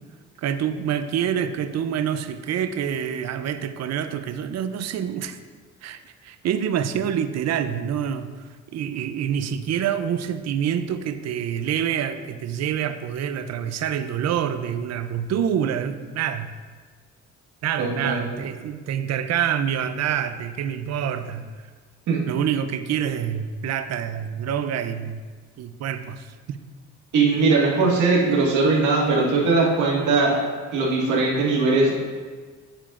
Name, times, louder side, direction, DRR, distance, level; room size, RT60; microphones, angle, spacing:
voice 1, 0.4-5.4 5.8-8.3 8.7-16.5 17.6-21.5 22.3-25.2 25.6-26.6, right 9 dB, 60° right, 11 dB, 0.5 m, -26 dB
voice 2, 17.8-18.2 22.1-22.2 27.1-30.4 30.7-31.9, right 3 dB, 80° right, -3 dB, 1.8 m, -20 dB
8.7 x 6.8 x 2.5 m, 1.5 s
cardioid pair, 90°, 30 cm